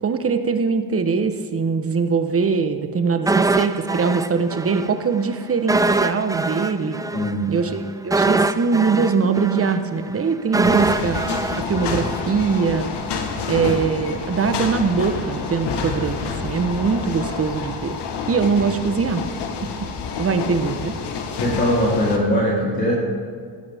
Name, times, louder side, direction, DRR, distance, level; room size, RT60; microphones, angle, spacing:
voice 1, 0.0-7.0 7.5-11.2 11.6-12.9 13.5-18.0 18.3-19.3 19.6-21.0, right 5 dB, 35° right, 8 dB, 1.1 m, -22 dB
sound 1, 3.3-4.9 5.2-5.3 5.7-12.8 13.1-13.2, right 3 dB, 10° right, 0.4 m, -23 dB
voice 2, 7.1-7.6 21.4-22.9, equal, 25° left, -7 dB, 3.2 m, -21 dB
sound 2, 10.6-22.2, left 5 dB, 70° left, 1.5 m, -28 dB
16.0 x 12.0 x 3.6 m, 2.1 s
cardioid pair, 80°, 42 cm